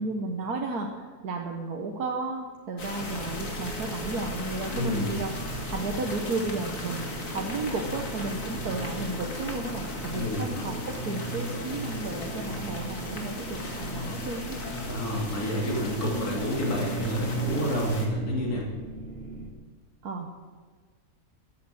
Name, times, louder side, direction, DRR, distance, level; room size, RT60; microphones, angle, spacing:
voice 1, 0.0-14.6 20.0-20.3, right 3 dB, 90° right, 1 dB, 1.7 m, -33 dB
sound 1, 2.8-18.1, left 1 dB, 60° left, 2.4 m, -35 dB
sound 2, 3.0-19.5, right 2 dB, 45° right, 1.7 m, -40 dB
voice 2, 4.7-5.1 10.1-10.5 14.9-18.6, left 1 dB, 85° left, -3 dB, 3.3 m, -29 dB
14.0 x 8.6 x 7.8 m, 1.5 s
omnidirectional pair, 1.6 m